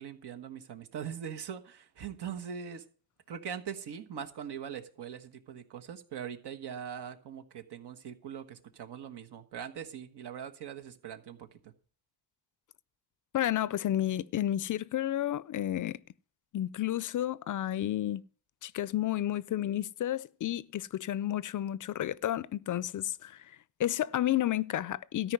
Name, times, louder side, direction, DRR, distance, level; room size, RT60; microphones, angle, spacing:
voice 1, 0.0-2.8 3.3-11.7, right 8 dB, 80° right, 1.4 m, -41 dB
voice 2, 13.3-16.0 16.5-18.2 18.6-23.4 23.8-25.3, left 12 dB, 50° left, 0.4 m, -31 dB
13.5 x 5.0 x 9.1 m
cardioid pair, 125°, 40 cm